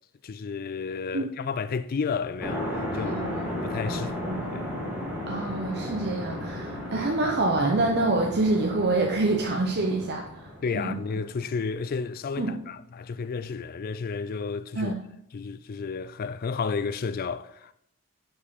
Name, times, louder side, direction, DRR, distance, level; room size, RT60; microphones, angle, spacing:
voice 1, 0.2-3.2 3.5-4.7 10.6-15.0 15.3-17.7, left 5 dB, 40° left, 0.3 m, -32 dB
sound 1, 2.4-11.4, left 1 dB, 5° right, 1.7 m, -34 dB
voice 2, 2.9-3.4 3.9-4.4 5.2-10.5 10.7-11.0 12.4-12.5 14.8-15.0, right 2 dB, 50° right, 0.7 m, -26 dB
6.5 x 5.2 x 5.4 m
head